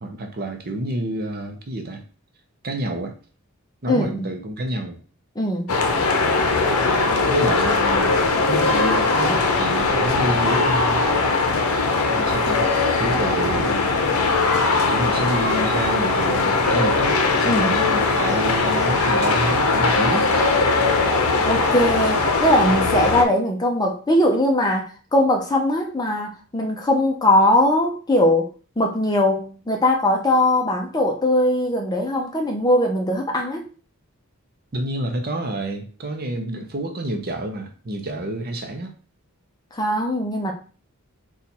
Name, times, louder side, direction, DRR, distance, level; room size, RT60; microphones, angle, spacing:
voice 1, 0.0-2.0 2.6-3.2 3.8-5.0 7.2-8.2 8.5-11.0 12.1-12.6 13.0-13.9 14.9-20.3 34.7-38.9, right 1 dB, 45° right, 5 dB, 0.6 m, -28 dB
voice 2, 3.9-4.3 5.4-5.7 17.5-17.7 21.4-28.5 28.8-33.7 39.7-40.5, left 1 dB, 20° left, 2 dB, 0.6 m, -20 dB
sound 1, 5.7-23.2, left 3 dB, 80° left, 0.6 m, -20 dB
4.2 x 2.4 x 4.1 m, 0.38 s
head